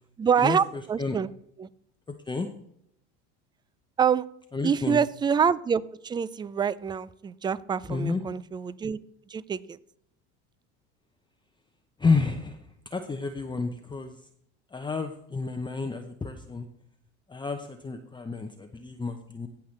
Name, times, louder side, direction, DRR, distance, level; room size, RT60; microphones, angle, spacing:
voice 1, 0.2-1.3 1.6-1.7 4.0-4.2 4.6-9.0 9.3-9.8, right 7 dB, 15° right, 20 dB, 0.3 m, -26 dB
voice 2, 4.5-5.0 7.9-8.2 12.0-14.2 14.7-16.7 17.3-19.5, left 4 dB, 15° left, 5 dB, 0.7 m, -30 dB
16.0 x 5.7 x 3.2 m, 0.73 s
supercardioid pair, 90°, 34 cm